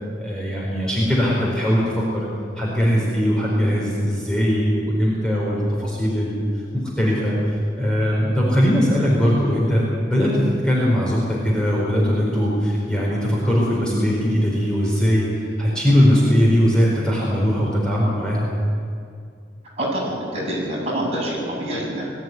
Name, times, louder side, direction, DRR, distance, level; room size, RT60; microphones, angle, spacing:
voice 1, 0.2-2.3 2.6-6.4 6.7-18.5, equal, 5° left, -5 dB, 4.7 m, -20 dB
voice 2, 19.8-22.0, right 1 dB, 35° right, -4 dB, 7.7 m, -26 dB
21.0 x 15.0 x 9.7 m, 2.3 s
head